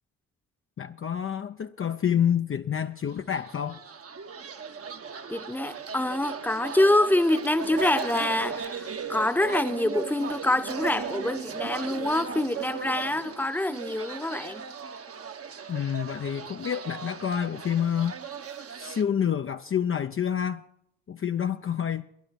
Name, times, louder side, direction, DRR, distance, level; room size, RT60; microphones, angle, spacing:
voice 1, 0.8-3.8 15.7-18.2 18.8-20.6 21.1-22.0, left 8 dB, 35° left, 0.6 m, -28 dB
sound 1, 3.2-19.0, right 6 dB, 40° right, 1.1 m, -37 dB
voice 2, 5.3-14.6, left 1 dB, 5° left, 0.9 m, -26 dB
13.0 x 10.5 x 7.4 m
cardioid pair, 70°, 35 cm